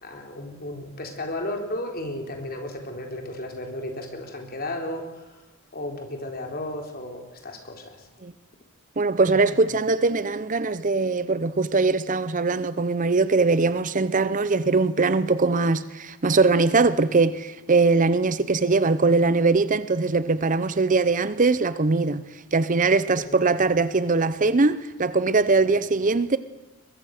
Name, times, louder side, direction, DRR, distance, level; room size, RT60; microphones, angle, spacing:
voice 1, 0.0-5.0 5.7-7.9 9.2-9.5 23.2-23.4, left 1 dB, 45° left, 3.9 m, -34 dB
voice 2, 9.0-22.2 22.5-26.4, right 3 dB, 35° right, 0.7 m, -21 dB
22.5 x 22.0 x 6.6 m
head